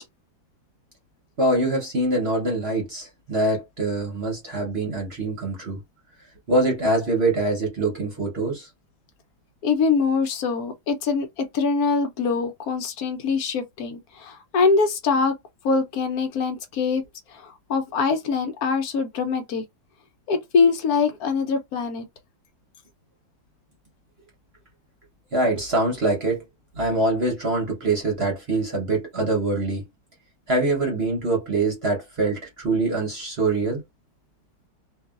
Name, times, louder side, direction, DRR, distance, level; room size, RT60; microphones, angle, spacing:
voice 1, 1.4-5.8 6.5-8.7 25.3-26.4 26.8-29.8 30.5-33.8, right 2 dB, 45° right, 0.9 m, -24 dB
voice 2, 9.6-15.4 15.6-17.0 17.3-19.6 20.3-22.0, left 4 dB, 65° left, 1.1 m, -23 dB
2.9 x 2.4 x 2.4 m
omnidirectional pair, 1.9 m